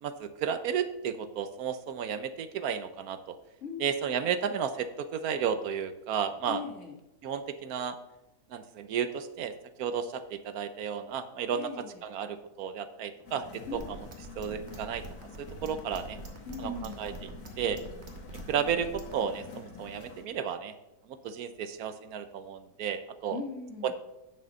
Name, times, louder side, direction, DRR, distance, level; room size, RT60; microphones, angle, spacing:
voice 1, 0.0-3.4 3.8-6.6 7.2-8.0 8.5-9.5 9.8-11.7 12.0-14.0 14.4-15.0 15.4-16.2 16.6-16.7 17.0-17.3 17.6-17.8 18.5-20.7 21.2-23.4 23.8-23.9, right 7 dB, 75° right, 11 dB, 1.1 m, -33 dB
voice 2, 6.5-6.9 11.5-12.0 13.7-13.8 16.4-17.2 23.3-23.9, left 4 dB, 50° left, 2 dB, 1.9 m, -39 dB
sound 1, 13.2-20.2, left 4 dB, 75° left, 1.9 m, -48 dB
sound 2, 13.7-19.1, right 2 dB, 45° right, 1.5 m, -44 dB
9.0 x 6.5 x 5.3 m, 0.89 s
omnidirectional pair, 1.6 m